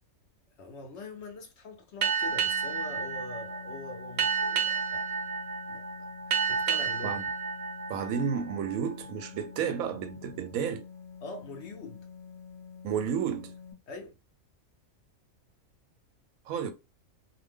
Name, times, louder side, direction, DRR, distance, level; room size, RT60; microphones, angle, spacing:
voice 1, 0.6-5.1 5.7-7.2 11.2-12.1 13.9-14.2, left 3 dB, 60° left, 0.9 m, -43 dB
Boat Water vehicle, 2.0-9.1, right 6 dB, 65° right, 0.7 m, -31 dB
sound 1, 2.3-13.7, left 6 dB, 10° left, 0.7 m, -48 dB
voice 2, 7.9-10.8 12.8-13.5 16.5-16.7, right 7 dB, 90° right, 1.0 m, -31 dB
2.6 x 2.1 x 3.3 m
omnidirectional pair, 1.4 m